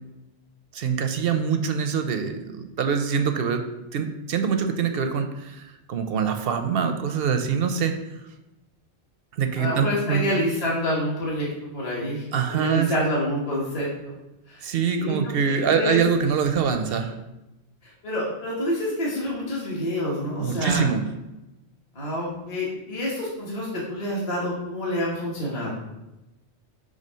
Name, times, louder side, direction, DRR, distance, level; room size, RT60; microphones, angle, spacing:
voice 1, 0.7-3.6 3.9-5.6 5.9-8.0 9.4-10.2 12.3-12.9 14.6-17.1 20.4-21.0, right 6 dB, 65° right, 7 dB, 0.7 m, -24 dB
voice 2, 9.6-12.2 12.5-14.1 14.5-14.6 14.9-16.0 17.8-20.9 21.9-25.8, equal, 35° left, -5 dB, 1.1 m, -28 dB
5.2 x 3.3 x 5.5 m, 0.96 s
omnidirectional pair, 1.2 m